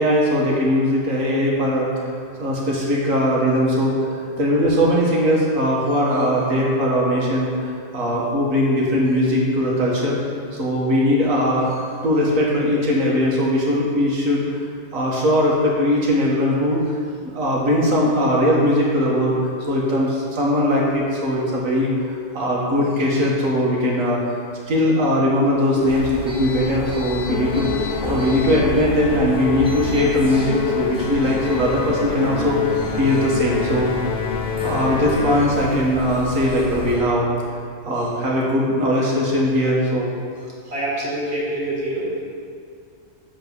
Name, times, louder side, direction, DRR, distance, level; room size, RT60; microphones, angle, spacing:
voice 1, 0.0-1.9 2.4-10.2 10.5-14.4 14.9-16.8 17.2-19.4 19.7-24.4 24.7-34.1 34.6-37.3 37.8-40.1, equal, 75° right, -4 dB, 1.7 m, -20 dB
sound 1, 25.8-37.0, equal, 5° right, 1.2 m, -32 dB
Musical instrument, 27.3-35.8, left 7 dB, 55° left, 0.7 m, -27 dB
voice 2, 40.7-42.2, right 1 dB, 55° right, -6 dB, 1.7 m, -25 dB
8.1 x 3.9 x 6.1 m, 2.3 s
omnidirectional pair, 1.4 m